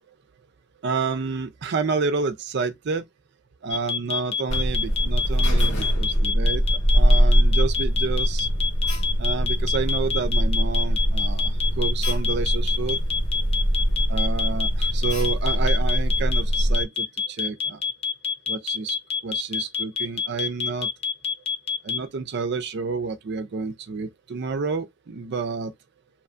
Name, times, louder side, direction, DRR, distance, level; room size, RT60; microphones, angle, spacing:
voice 1, 0.8-3.0 3.6-8.5 9.2-13.0 14.1-17.8 18.5-19.0 19.2-20.9 21.8-25.7, right 4 dB, 55° right, 0.4 m, -29 dB
sound 1, 3.7-22.0, left 6 dB, 30° left, 0.4 m, -26 dB
Alarm, 4.5-16.9, equal, 85° left, 1.7 m, -22 dB
2.9 x 2.3 x 2.4 m
head